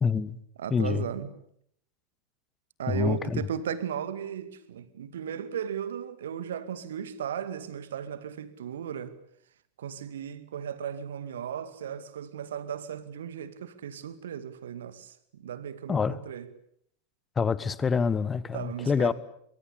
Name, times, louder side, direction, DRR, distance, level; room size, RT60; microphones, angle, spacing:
voice 1, 0.0-0.4 0.7-1.1 2.9-3.4 15.9-16.2 17.4-19.1, left 5 dB, 20° left, 1.3 m, -26 dB
voice 2, 0.6-1.3 2.8-9.1 9.8-16.5 18.5-19.1, right 8 dB, 60° right, 2.2 m, -36 dB
25.5 x 24.0 x 8.7 m
figure-of-eight pair, 90°, 0 cm